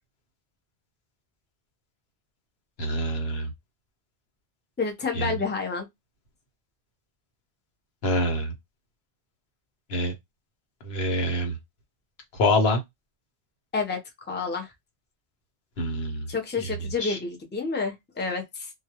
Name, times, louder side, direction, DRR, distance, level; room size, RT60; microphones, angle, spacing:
voice 1, 2.8-3.5 5.1-5.3 8.0-8.5 9.9-10.1 10.8-11.6 12.3-12.8 15.8-16.3 16.6-16.7 17.0-17.2, left 1 dB, 70° left, 1.1 m, -25 dB
voice 2, 4.8-5.9 13.7-14.7 16.3-18.7, left 4 dB, 15° left, 0.5 m, -29 dB
2.3 x 2.2 x 2.8 m
omnidirectional pair, 1.1 m